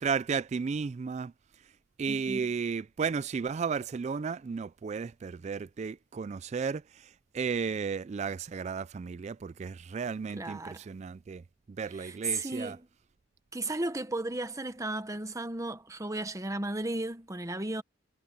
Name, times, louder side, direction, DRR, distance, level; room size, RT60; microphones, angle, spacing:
voice 1, 0.0-1.3 2.0-6.8 7.3-11.4 11.8-12.8, right 5 dB, 35° right, 0.3 m, -33 dB
voice 2, 2.1-2.5 10.3-10.8 11.9-12.9 13.5-17.8, right 2 dB, 15° right, 1.1 m, -34 dB
head